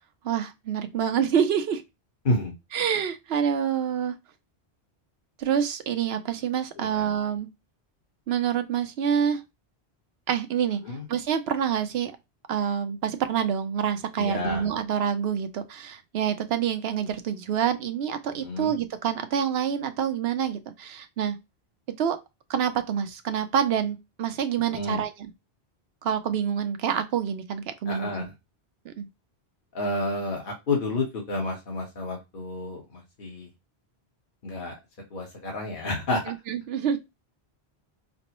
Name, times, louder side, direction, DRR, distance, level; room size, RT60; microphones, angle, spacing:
voice 1, 0.2-1.8 2.7-4.1 5.4-7.5 8.3-9.4 10.3-10.8 11.1-12.1 12.5-21.4 22.0-22.2 22.5-25.3 26.0-28.2 28.9-29.1 36.3-37.0, right 8 dB, 75° right, 0.8 m, -27 dB
voice 2, 14.2-14.7 18.4-18.7 24.7-25.0 27.9-28.3 29.7-33.5 34.4-34.7 35.1-36.2, left 2 dB, 55° left, 1.2 m, -30 dB
5.1 x 2.0 x 2.9 m
omnidirectional pair, 1.1 m